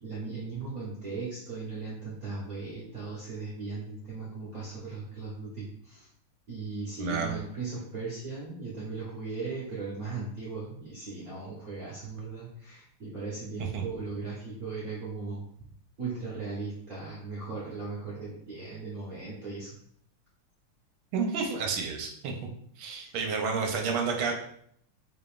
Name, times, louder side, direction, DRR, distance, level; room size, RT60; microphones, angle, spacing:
voice 1, 0.0-6.0 6.5-15.5 16.0-19.8 22.9-23.1 23.4-23.5, right 3 dB, 50° right, -7 dB, 1.3 m, -38 dB
voice 2, 7.0-7.4 13.6-13.8 21.1-22.3 22.8-24.3, right 5 dB, 80° right, 2 dB, 1.5 m, -30 dB
3.9 x 3.5 x 2.4 m, 0.67 s
omnidirectional pair, 2.4 m